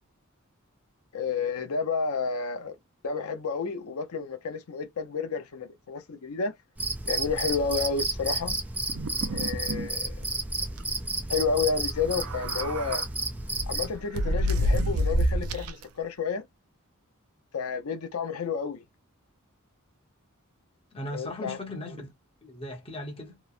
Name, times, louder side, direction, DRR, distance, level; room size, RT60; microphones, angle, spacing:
voice 1, 1.1-2.8 3.0-6.5 7.1-8.6 9.3-10.2 11.3-13.0 13.7-16.5 17.5-18.8 21.1-21.6, left 5 dB, 90° left, 0.6 m, -30 dB
Cricket, 6.8-14.0, right 2 dB, 5° right, 0.5 m, -32 dB
sound 1, 8.9-9.9 10.2-10.3 10.6-10.8 12.0-13.0 13.6-15.8, equal, 75° right, 0.5 m, -28 dB
voice 2, 20.9-22.1 22.4-23.4, left 1 dB, 25° left, 0.9 m, -37 dB
2.9 x 2.1 x 2.4 m
head